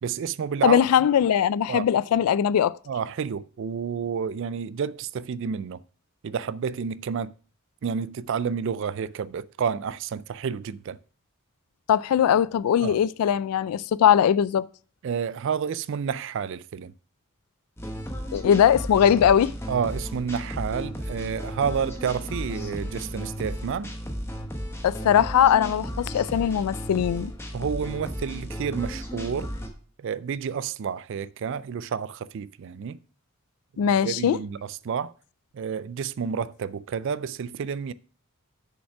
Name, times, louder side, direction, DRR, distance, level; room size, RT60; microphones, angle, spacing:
voice 1, 0.0-0.8 1.7-1.8 2.9-5.8 6.2-7.3 7.8-11.0 12.8-13.0 15.0-16.9 19.7-23.9 27.5-29.5 30.0-33.0 33.8-35.1 35.5-37.9, right 6 dB, 55° right, 0.3 m, -30 dB
voice 2, 0.6-2.8 11.9-14.7 18.3-19.5 24.8-27.3 33.8-34.4, left 9 dB, 80° left, 0.3 m, -20 dB
sound 1, 17.8-29.7, equal, 10° left, 1.1 m, -34 dB
6.8 x 5.3 x 5.8 m
head